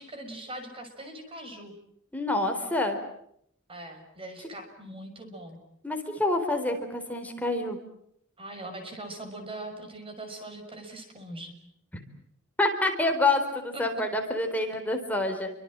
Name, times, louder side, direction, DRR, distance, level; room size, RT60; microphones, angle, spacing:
voice 1, 0.0-1.7 3.7-5.6 8.4-11.6 13.7-14.0, right 1 dB, 25° right, 6 dB, 6.4 m, -41 dB
voice 2, 2.1-3.0 5.8-7.8 12.6-15.5, left 2 dB, 5° left, 4 dB, 4.2 m, -27 dB
29.5 x 25.0 x 7.7 m, 0.71 s
head